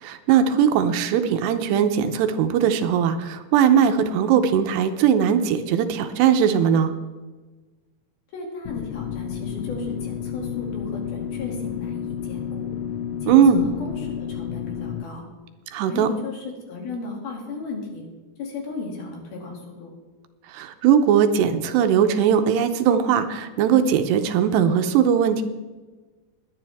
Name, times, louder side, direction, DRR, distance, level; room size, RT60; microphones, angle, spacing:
voice 1, 0.0-6.9 13.3-13.6 15.7-16.1 20.5-25.4, right 8 dB, 80° right, 8 dB, 2.9 m, -19 dB
voice 2, 8.3-12.7 13.2-15.3 15.8-18.0 18.4-19.9, left 3 dB, 60° left, 0 dB, 4.2 m, -35 dB
sound 1, 8.7-15.0, left 9 dB, 85° left, 2.9 m, -31 dB
20.0 x 10.5 x 3.5 m, 1.3 s
omnidirectional pair, 5.0 m